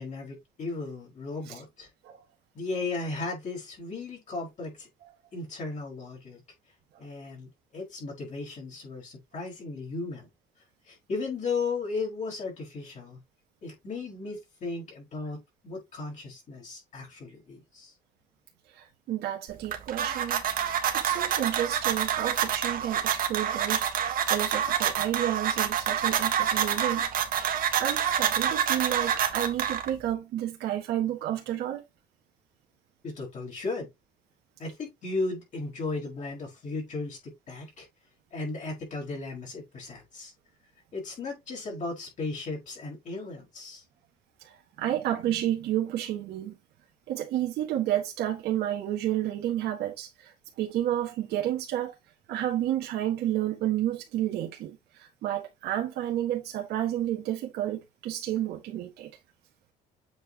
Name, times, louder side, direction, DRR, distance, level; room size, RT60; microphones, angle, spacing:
voice 1, 0.0-1.9 2.5-4.9 5.3-6.4 7.0-10.3 10.8-13.2 13.6-15.4 15.6-17.9 33.0-33.9 34.6-37.9 38.3-40.3 40.9-43.8, left 3 dB, 45° left, 4.6 m, -35 dB
voice 2, 18.7-20.4 20.9-27.1 27.4-27.5 27.8-31.8 44.4-46.5 47.1-51.9 52.3-59.1, right 12 dB, 75° right, 1.6 m, -31 dB
sound 1, 19.5-30.1, right 9 dB, 60° right, 1.4 m, -27 dB
7.9 x 4.6 x 3.0 m
cardioid pair, 110°, 17 cm